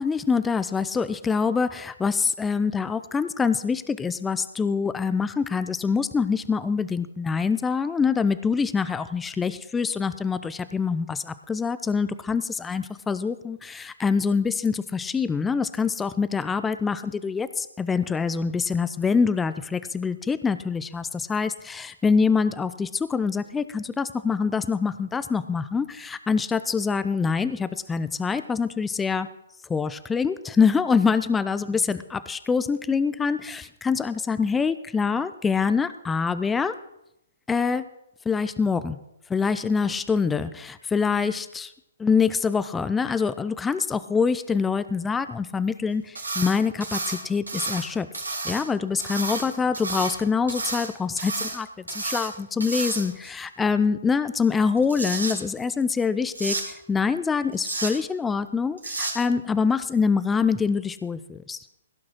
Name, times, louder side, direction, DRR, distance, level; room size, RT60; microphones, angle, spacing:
voice 1, 0.0-29.3 29.7-32.0 32.3-36.7 37.5-37.8 38.3-39.0 39.3-41.7 42.0-48.1 48.4-61.6, left 5 dB, 10° left, 13 dB, 0.5 m, -25 dB
sound 1, 46.1-46.5 46.8-47.9 48.1-48.6 49.0-50.2 50.5-50.9 51.2-51.6 51.9-52.3 52.6-53.3 54.6-55.3 56.3-56.6 57.5-57.9 58.8-59.1, right 3 dB, 80° right, 3.2 m, -30 dB
16.0 x 6.1 x 6.3 m, 0.82 s
figure-of-eight pair, 125°, 0 cm